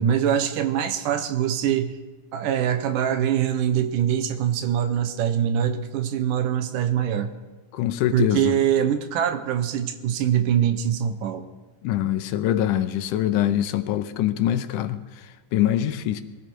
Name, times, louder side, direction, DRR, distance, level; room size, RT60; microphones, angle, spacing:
voice 1, 0.0-2.0 2.3-7.3 8.1-11.5, right 9 dB, 80° right, 9 dB, 2.6 m, -23 dB
voice 2, 7.7-8.5 11.8-15.0 15.5-16.2, left 11 dB, 80° left, 11 dB, 2.2 m, -23 dB
21.5 x 14.0 x 4.6 m, 1.3 s
omnidirectional pair, 3.7 m